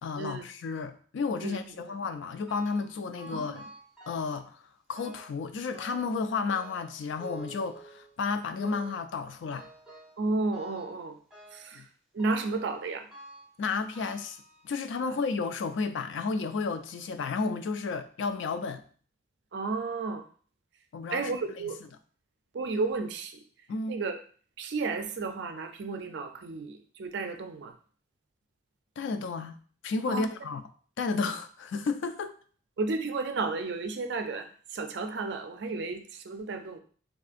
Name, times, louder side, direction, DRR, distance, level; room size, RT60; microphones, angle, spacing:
voice 1, 0.0-3.7 4.1-4.5 4.9-9.7 11.7-11.9 13.6-14.4 14.6-18.8 20.9-21.7 23.7-24.0 29.0-29.6 29.8-30.6 31.0-32.3, left 4 dB, 70° left, 0.3 m, -32 dB
voice 2, 1.4-1.9 3.3-3.6 10.2-11.2 11.5-11.8 12.1-13.1 19.5-20.2 21.1-21.8 22.5-23.4 23.9-24.2 24.6-27.7 30.1-30.3 32.8-36.8, right 3 dB, 60° right, 0.4 m, -33 dB
sound 1, 2.5-2.9 3.2-4.5 4.9-5.4 5.7-6.2 6.5-8.2 8.6-9.1 9.5-10.2 10.5-11.0 11.3-11.7 12.2-12.6 13.1-13.6 13.9-15.0 15.7-15.8 16.6-16.7 17.1-17.2, right 2 dB, ahead, 0.7 m, -49 dB
3.6 x 2.5 x 2.4 m
head